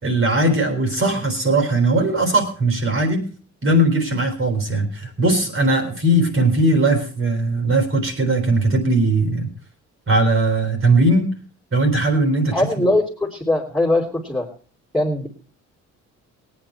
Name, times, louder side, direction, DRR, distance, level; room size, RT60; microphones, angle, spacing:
voice 1, 0.0-3.2 3.6-9.5 10.1-11.3 11.7-12.6, right 2 dB, 45° right, 5 dB, 3.9 m, -19 dB
voice 2, 12.5-14.5 14.9-15.3, left 1 dB, ahead, -5 dB, 3.0 m, -21 dB
18.0 x 9.4 x 4.4 m, 0.39 s
cardioid pair, 90°, 30 cm